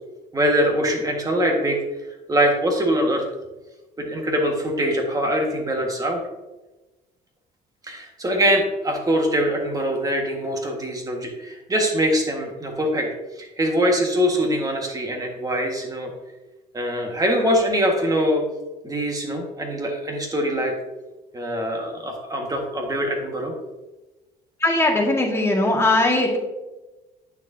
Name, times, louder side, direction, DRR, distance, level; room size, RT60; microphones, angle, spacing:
voice 1, 0.3-1.8 2.3-3.2 4.0-6.2 7.8-13.1 13.4-16.1 16.7-18.4 18.8-20.7 21.3-23.5, equal, 20° right, 2 dB, 1.6 m, -23 dB
voice 2, 24.6-26.4, left 2 dB, 15° left, -1 dB, 1.8 m, -19 dB
9.0 x 6.4 x 2.7 m, 1.1 s
cardioid pair, 110°, 17 cm